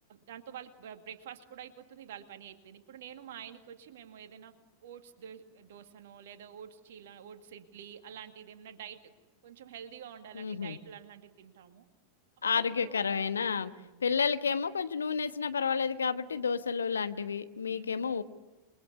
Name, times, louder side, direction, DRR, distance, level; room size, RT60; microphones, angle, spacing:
voice 1, 0.1-4.5 4.8-9.1 9.4-11.9 12.5-13.0 13.6-14.0 17.7-17.9, right 9 dB, 55° right, 8 dB, 2.3 m, -48 dB
voice 2, 10.3-10.8 12.4-13.7 14.0-18.2, left 6 dB, 70° left, 11 dB, 1.2 m, -30 dB
28.5 x 22.5 x 8.4 m, 1.1 s
figure-of-eight pair, 90°, 0 cm